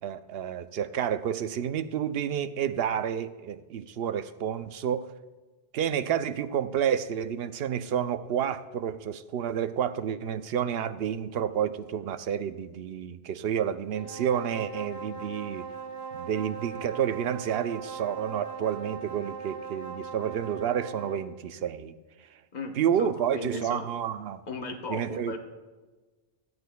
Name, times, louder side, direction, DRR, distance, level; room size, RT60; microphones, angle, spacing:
voice 1, 0.0-5.1 5.7-15.7 16.1-21.9 22.7-24.4 24.9-25.4, right 9 dB, 70° right, 12 dB, 0.8 m, -30 dB
sound 1, 13.9-21.3, right 5 dB, 25° right, 1.6 m, -39 dB
voice 2, 22.5-23.9 24.5-25.4, left 2 dB, 45° left, 4 dB, 1.1 m, -36 dB
17.5 x 13.5 x 2.3 m, 1.3 s
omnidirectional pair, 1.1 m